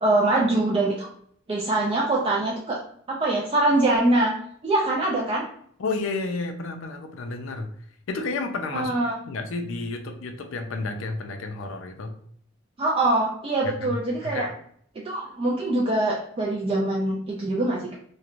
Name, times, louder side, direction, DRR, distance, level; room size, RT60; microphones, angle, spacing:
voice 1, 0.0-1.1 1.5-2.8 3.1-4.4 4.6-5.5 8.7-9.1 12.8-14.5 15.0-18.0, right 2 dB, 25° right, -3 dB, 0.3 m, -23 dB
voice 2, 5.8-7.7 8.1-12.2 13.6-14.5, left 3 dB, 65° left, 5 dB, 0.4 m, -31 dB
3.0 x 2.1 x 2.4 m, 0.65 s
head